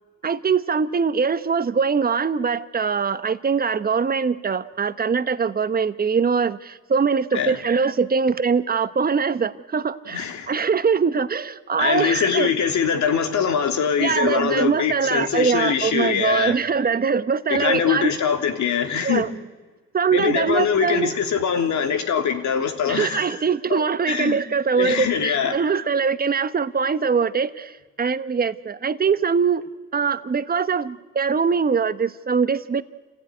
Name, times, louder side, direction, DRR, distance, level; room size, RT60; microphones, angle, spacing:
voice 1, 0.2-12.5 14.0-18.1 19.0-19.3 19.9-21.1 22.9-29.6 29.9-32.8, right 5 dB, 30° right, 13 dB, 1.1 m, -22 dB
voice 2, 10.1-10.5 11.8-16.6 17.5-19.3 20.1-23.3 23.7-24.4 24.7-25.6, left 7 dB, 70° left, 5 dB, 3.2 m, -23 dB
28.0 x 16.0 x 9.8 m, 1.3 s
cardioid pair, 90°, 30 cm